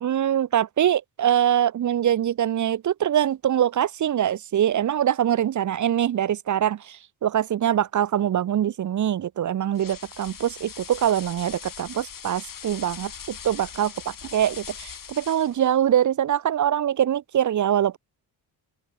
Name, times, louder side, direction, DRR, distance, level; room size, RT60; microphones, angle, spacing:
voice 1, 0.0-18.0, right 10 dB, 45° right, 0.6 m, -23 dB
sound 1, 9.8-15.7, left 8 dB, 50° left, 2.0 m, -41 dB
open air
cardioid pair, 85°, 43 cm